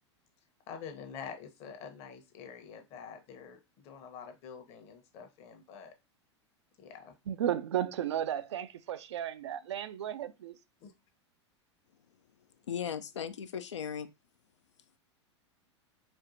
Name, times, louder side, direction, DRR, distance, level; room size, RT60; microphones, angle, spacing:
voice 1, 0.7-5.9 6.8-7.1 10.8-10.9, left 6 dB, 45° left, 0.9 m, -47 dB
voice 2, 7.3-10.6, right 10 dB, 70° right, 0.4 m, -34 dB
voice 3, 12.7-14.1, left 8 dB, 80° left, 0.4 m, -37 dB
4.4 x 2.4 x 2.6 m
figure-of-eight pair, 95°, 15 cm